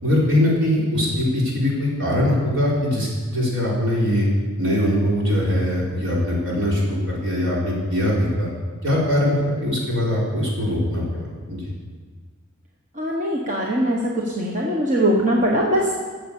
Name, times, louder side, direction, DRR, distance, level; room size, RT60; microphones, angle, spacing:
voice 1, 0.0-4.3 4.6-8.5 8.8-9.4 9.6-11.7, left 1 dB, 65° right, -5 dB, 4.5 m, -21 dB
voice 2, 13.0-14.0 14.3-15.9, equal, 40° right, -3 dB, 1.4 m, -21 dB
13.0 x 7.7 x 7.2 m, 1.5 s
head